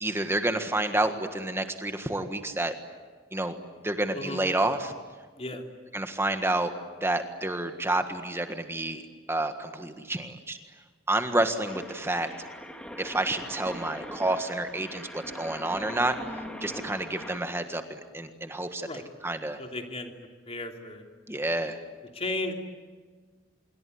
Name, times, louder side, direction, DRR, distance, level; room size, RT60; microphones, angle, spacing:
voice 1, 0.0-2.7 3.3-3.6 3.8-4.9 5.9-6.7 7.0-9.0 9.3-10.6 11.1-12.3 13.0-16.1 16.6-18.9 19.2-19.6 21.3-21.8, right 2 dB, 15° right, 7 dB, 1.6 m, -29 dB
sound 1, 11.6-17.4, equal, 5° left, 2.7 m, -41 dB
voice 2, 19.6-20.1 20.5-21.0 22.1-22.5, left 2 dB, 30° left, 4 dB, 3.2 m, -34 dB
26.5 x 23.0 x 9.5 m, 1.5 s
head